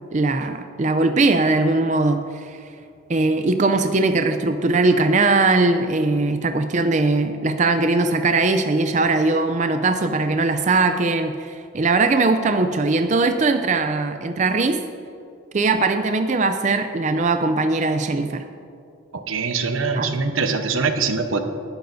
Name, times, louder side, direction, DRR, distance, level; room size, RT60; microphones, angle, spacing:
voice 1, 0.1-2.6 3.1-14.8 15.5-18.4 19.9-20.1, right 3 dB, 35° right, 7 dB, 0.4 m, -20 dB
voice 2, 19.1-21.4, right 4 dB, 90° right, 6 dB, 1.0 m, -23 dB
19.0 x 11.5 x 2.7 m, 2.5 s
head